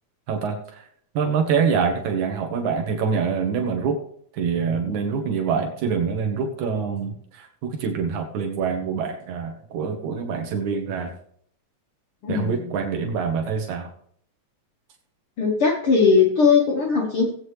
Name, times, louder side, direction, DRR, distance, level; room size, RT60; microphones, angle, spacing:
voice 1, 0.3-0.8 1.2-4.0 4.4-11.1 12.3-13.9, right 6 dB, 85° right, 3 dB, 2.7 m, -25 dB
voice 2, 12.2-12.7 15.4-17.3, left 5 dB, 55° left, 0 dB, 2.1 m, -19 dB
17.5 x 8.6 x 3.2 m, 0.64 s
omnidirectional pair, 3.3 m